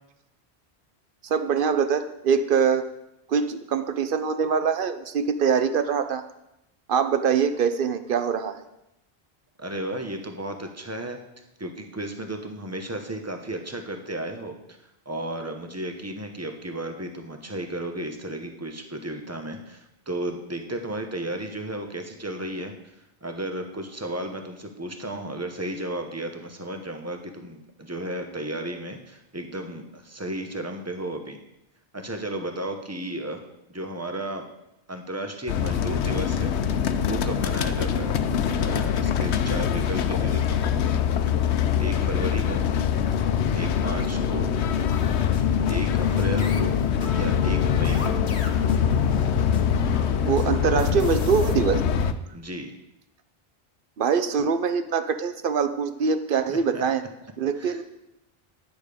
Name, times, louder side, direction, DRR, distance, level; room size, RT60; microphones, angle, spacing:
voice 1, 1.2-2.8 3.3-6.2 6.9-8.6 50.2-51.8 54.0-57.0 57.4-57.8, right 6 dB, 55° right, 10 dB, 0.9 m, -23 dB
voice 2, 9.6-11.2 11.6-14.5 15.0-22.7 23.2-31.4 31.9-33.4 33.7-34.5 34.9-36.5 37.0-38.2 38.5-40.7 41.8-42.6 43.5-44.5 45.7-46.8 47.1-48.2 52.3-52.7 56.3-56.8 57.6-57.8, right 1 dB, 15° right, 5 dB, 1.0 m, -33 dB
sound 1, 35.5-52.1, left 8 dB, 90° left, 0.9 m, -24 dB
sound 2, 44.9-51.5, left 4 dB, 50° left, 1.4 m, -38 dB
10.5 x 8.9 x 5.1 m, 0.87 s
omnidirectional pair, 1.1 m